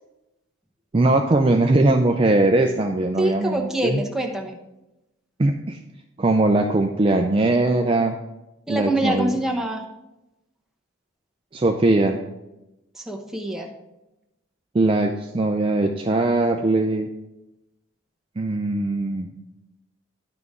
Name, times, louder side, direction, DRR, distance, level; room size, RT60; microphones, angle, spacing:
voice 1, 0.9-4.0 5.4-5.8 6.2-8.2 8.7-9.3 11.5-12.2 14.7-17.1 18.4-19.3, right 2 dB, 25° right, 4 dB, 0.4 m, -20 dB
voice 2, 3.2-4.6 8.7-9.8 13.0-13.7, right 1 dB, ahead, 0 dB, 0.9 m, -25 dB
11.0 x 6.0 x 3.7 m, 0.95 s
head